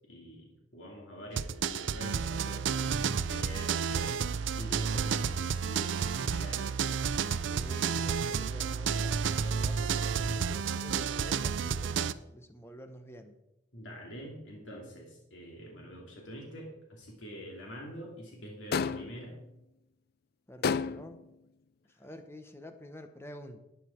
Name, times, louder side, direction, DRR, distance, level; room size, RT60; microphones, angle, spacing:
voice 1, 0.1-3.0 3.3-4.3 4.6-6.7 13.7-19.4, equal, 85° left, -1 dB, 2.7 m, -45 dB
sound 1, 1.4-12.1, right 6 dB, 85° right, 0.5 m, -31 dB
voice 2, 7.5-13.4 20.5-21.2 22.0-23.6, equal, 15° left, 7 dB, 1.1 m, -48 dB
sound 2, 18.7-19.3 20.6-21.2, left 6 dB, 55° left, 0.4 m, -30 dB
13.0 x 9.4 x 4.5 m, 0.88 s
head